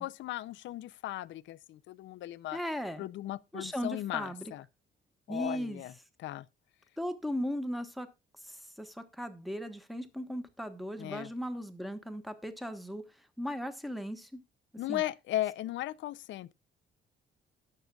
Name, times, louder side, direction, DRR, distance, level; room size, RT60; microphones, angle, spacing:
voice 1, 0.0-2.6 3.0-4.6 5.3-5.9 6.2-6.4 11.0-11.3 14.8-16.5, left 14 dB, 80° left, 0.6 m, -36 dB
voice 2, 2.5-3.1 3.5-4.5 5.3-5.8 7.0-8.1 8.4-13.0 13.4-14.4 14.9-15.0, equal, ahead, 1.3 m, -37 dB
19.0 x 6.6 x 2.4 m
cardioid pair, 155°, 19 cm